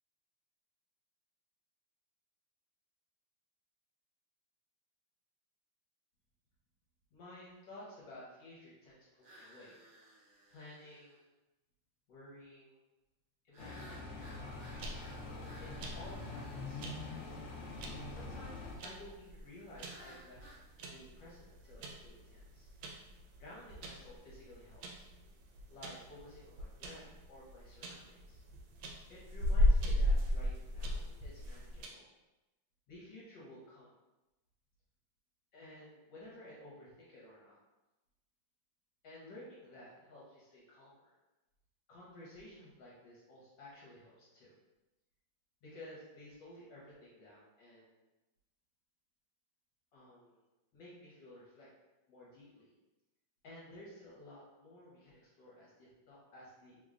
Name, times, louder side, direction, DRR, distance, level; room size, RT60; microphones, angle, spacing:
voice 1, 7.1-9.8 10.5-11.3 12.1-12.8 13.4-15.1 15.6-15.7 15.9-17.4 18.1-20.4 20.8-22.7 23.4-25.0 25.7-28.4 29.1-32.0 32.9-33.9 35.5-37.6 39.0-41.1 41.9-44.5 45.6-48.0 49.9-50.5 50.7-51.7 52.1-52.7 53.4-56.8, left 1 dB, 70° left, -7 dB, 1.4 m, -54 dB
sound 1, 9.2-11.2 13.5-17.2 19.8-20.6, right 1 dB, 55° right, 0.7 m, -58 dB
sound 2, 13.6-18.8, left 3 dB, 90° left, 0.6 m, -45 dB
sound 3, 14.3-31.9, left 1 dB, 80° right, 1.3 m, -36 dB
3.3 x 2.2 x 3.7 m, 1.0 s
omnidirectional pair, 2.2 m